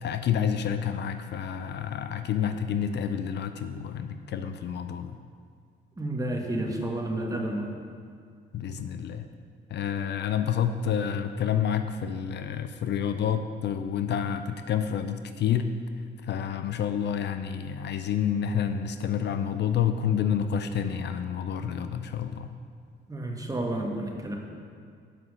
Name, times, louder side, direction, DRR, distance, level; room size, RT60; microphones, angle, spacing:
voice 1, 0.0-5.1 8.5-9.3 9.7-15.7 16.3-22.5, left 8 dB, 60° left, 9 dB, 0.5 m, -29 dB
voice 2, 6.0-7.7 23.1-24.4, right 1 dB, 15° right, 0 dB, 1.4 m, -30 dB
7.5 x 5.7 x 6.4 m, 2.1 s
cardioid pair, 90°, 20 cm